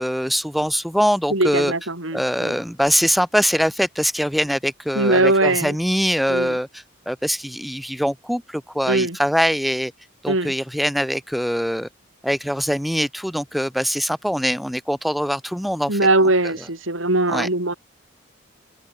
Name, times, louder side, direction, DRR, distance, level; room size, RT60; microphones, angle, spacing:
voice 1, 0.0-1.7 2.1-9.9 10.2-11.9 12.2-16.0 16.4-16.5 17.3-17.5, equal, ahead, 2.4 m, -23 dB
voice 2, 1.3-2.6 5.0-5.7 6.3-6.6 8.9-9.2 10.3-10.5 15.9-17.7, right 2 dB, 80° right, 5.2 m, -20 dB
open air
head